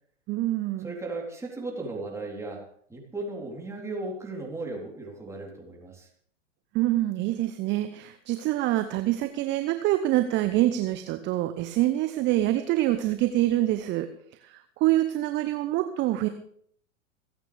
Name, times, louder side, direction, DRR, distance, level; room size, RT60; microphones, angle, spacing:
voice 1, 0.3-0.9 6.7-14.1 14.4-16.3, right 15 dB, 30° right, 9 dB, 0.9 m, -26 dB
voice 2, 0.8-2.6 2.9-6.1, right 2 dB, 5° right, -2 dB, 3.7 m, -36 dB
27.0 x 9.1 x 3.5 m, 0.63 s
figure-of-eight pair, 100°, 37 cm